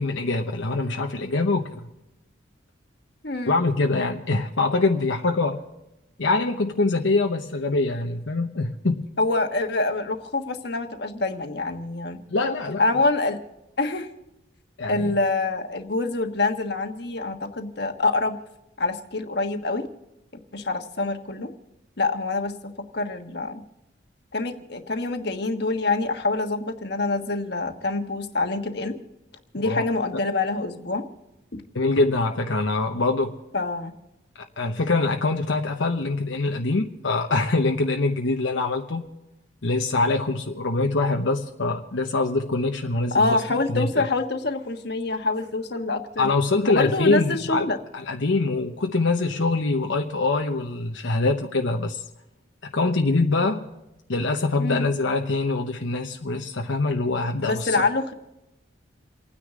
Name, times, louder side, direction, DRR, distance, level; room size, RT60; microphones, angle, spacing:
voice 1, 0.0-1.9 3.5-5.6 6.2-9.0 12.3-12.8 14.8-15.1 29.6-29.8 31.7-33.4 34.4-39.1 39.6-43.4 43.7-44.1 46.2-47.7 47.9-52.1 52.6-53.6 54.1-57.8, left 3 dB, 75° left, 2 dB, 1.0 m, -24 dB
voice 2, 3.2-3.5 9.2-12.2 12.8-13.4 13.8-14.1 14.9-18.4 18.8-19.9 20.5-21.5 22.0-23.6 24.3-29.0 29.5-31.1 31.5-31.6 33.5-33.9 43.1-46.3 46.7-47.8 54.6-54.9 57.4-58.1, left 3 dB, 55° left, 5 dB, 1.4 m, -26 dB
29.5 x 9.8 x 3.7 m, 0.94 s
head